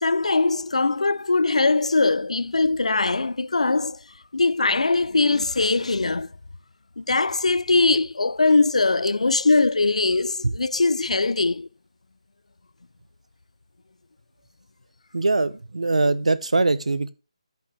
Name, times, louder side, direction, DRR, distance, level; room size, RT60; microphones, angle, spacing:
voice 1, 0.0-4.0 4.3-6.3 7.0-11.7, left 3 dB, 90° left, 0.4 m, -21 dB
voice 2, 15.1-17.1, right 3 dB, 85° right, 0.9 m, -22 dB
9.5 x 6.8 x 3.3 m
figure-of-eight pair, 160°, 3 cm